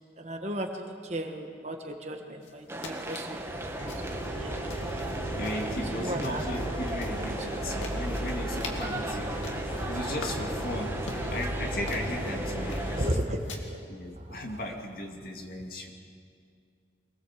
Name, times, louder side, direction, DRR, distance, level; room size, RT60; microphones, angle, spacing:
voice 1, 0.2-4.6 5.8-6.5 7.4-7.5 13.0-13.4 13.7-13.8 14.1-14.6, right 1 dB, 35° right, 4 dB, 1.6 m, -35 dB
sound 1, 2.4-13.6, left 2 dB, 85° left, 2.6 m, -46 dB
sound 2, 2.7-13.1, right 1 dB, 15° right, 1.2 m, -37 dB
sound 3, 3.3-13.2, right 1 dB, 25° left, 1.6 m, -35 dB
voice 2, 5.3-11.0 11.3-13.0 13.9-15.9, left 1 dB, 50° left, 1 dB, 2.5 m, -36 dB
25.0 x 18.5 x 7.6 m, 2.3 s
head